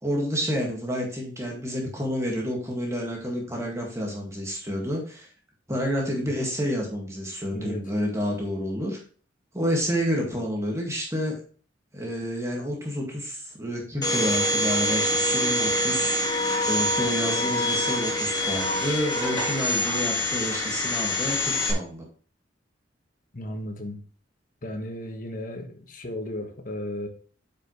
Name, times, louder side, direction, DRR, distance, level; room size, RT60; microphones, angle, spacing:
voice 1, 0.0-5.3 5.7-9.0 9.5-11.4 11.9-16.2 16.6-22.1, equal, 15° right, 1.9 m, -29 dB
Domestic sounds home sounds, 14.0-21.7, left 1 dB, 20° left, 1.8 m, -25 dB
voice 2, 23.3-24.0 24.6-27.1, left 1 dB, 45° left, 1.4 m, -35 dB
8.9 x 5.7 x 3.1 m
head